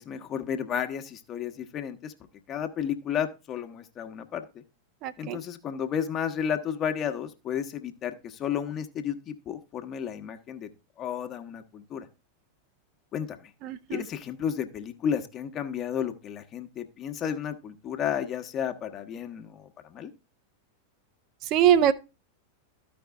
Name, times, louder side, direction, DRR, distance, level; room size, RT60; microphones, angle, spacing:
voice 1, 0.0-2.1 2.5-4.6 5.2-10.7 11.0-12.1 13.1-13.4 13.9-20.1, left 8 dB, 30° left, 1.0 m, -32 dB
voice 2, 5.0-5.4 13.6-14.0 21.5-21.9, right 10 dB, 40° right, 0.5 m, -22 dB
13.5 x 5.2 x 3.5 m
figure-of-eight pair, 90°, 0 cm